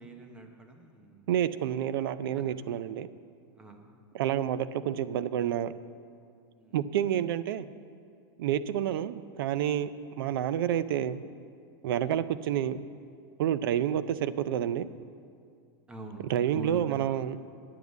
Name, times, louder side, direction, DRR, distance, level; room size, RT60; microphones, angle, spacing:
voice 1, 0.0-1.3 2.4-2.5 3.6-3.9 6.6-6.8 11.9-12.2 15.9-17.1, right 1 dB, 5° right, 4 dB, 0.8 m, -45 dB
voice 2, 1.3-3.1 4.1-5.7 6.7-7.7 8.4-9.9 10.2-11.2 11.8-12.8 13.4-14.9 16.3-17.4, right 10 dB, 65° right, 15 dB, 0.5 m, -29 dB
9.6 x 7.3 x 8.0 m, 2.3 s
supercardioid pair, 170°, 13 cm